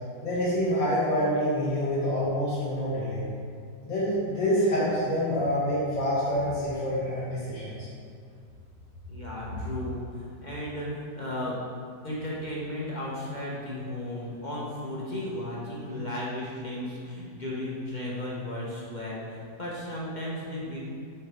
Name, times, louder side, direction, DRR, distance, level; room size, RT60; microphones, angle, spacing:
voice 1, 0.2-3.2 3.8-7.9, equal, 85° left, -10 dB, 2.8 m, -27 dB
voice 2, 9.1-11.5 12.0-20.8, left 1 dB, 30° left, -6 dB, 1.2 m, -34 dB
8.1 x 4.5 x 4.9 m, 2.3 s
omnidirectional pair, 2.0 m